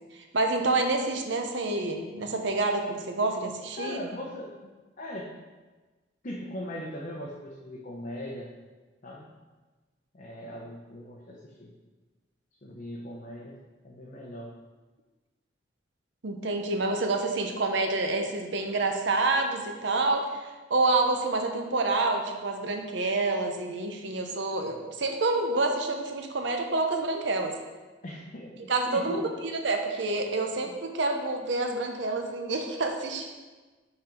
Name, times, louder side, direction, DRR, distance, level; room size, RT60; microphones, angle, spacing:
voice 1, 0.1-4.0 16.2-27.5 28.7-33.3, right 3 dB, 70° right, 4 dB, 0.8 m, -28 dB
voice 2, 3.7-4.7 5.0-5.3 6.2-8.5 9.0-9.3 10.1-11.7 12.6-13.5 13.8-14.5 18.7-18.8 28.0-29.3 30.6-30.7, left 1 dB, 45° left, -2 dB, 0.7 m, -39 dB
5.8 x 4.4 x 5.2 m, 1.3 s
head